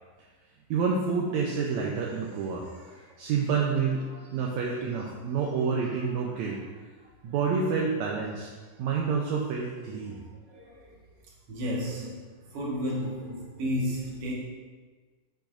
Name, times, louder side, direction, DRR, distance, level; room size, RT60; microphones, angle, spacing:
voice 1, 0.7-6.6 7.2-8.5 8.8-10.2, right 5 dB, 75° right, -2 dB, 1.8 m, -28 dB
voice 2, 10.1-10.9 11.5-12.2 12.5-14.3, equal, 50° right, -4 dB, 2.2 m, -32 dB
8.9 x 7.5 x 2.6 m, 1.4 s
omnidirectional pair, 3.9 m